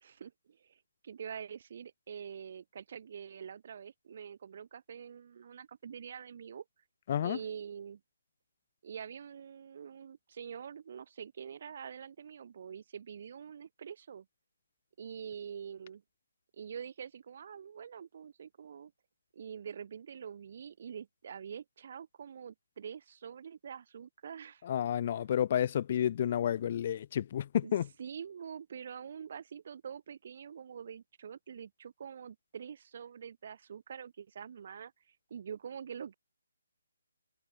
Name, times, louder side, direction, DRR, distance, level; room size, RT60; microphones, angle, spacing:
voice 1, 0.0-6.6 7.2-8.0 8.8-14.3 15.0-16.0 16.5-18.9 19.3-24.6 25.2-25.3 27.6-27.7 28.0-36.2, right 7 dB, 50° right, 0.6 m, -45 dB
voice 2, 7.1-7.4 24.6-27.9, left 10 dB, 40° left, 0.6 m, -30 dB
hypercardioid pair, 155°, 0 cm